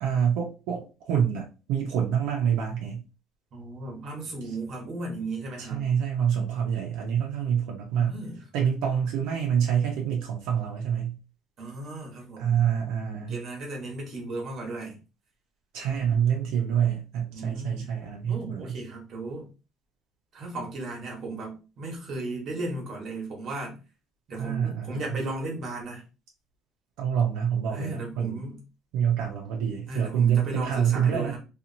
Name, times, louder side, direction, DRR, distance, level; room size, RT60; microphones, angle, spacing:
voice 1, 0.0-3.0 5.6-8.1 8.5-11.2 12.4-13.4 15.7-18.7 24.3-25.0 27.0-28.4 28.9-31.3, right 8 dB, 80° right, 0.7 m, -26 dB
voice 2, 3.5-5.9 7.9-8.4 11.6-12.6 13.3-15.0 17.3-17.9 18.2-19.5 20.3-23.8 24.3-26.0 27.7-28.6 29.9-31.4, right 2 dB, 40° right, 1.1 m, -35 dB
2.9 x 2.4 x 2.6 m
cardioid pair, 165°, 0 cm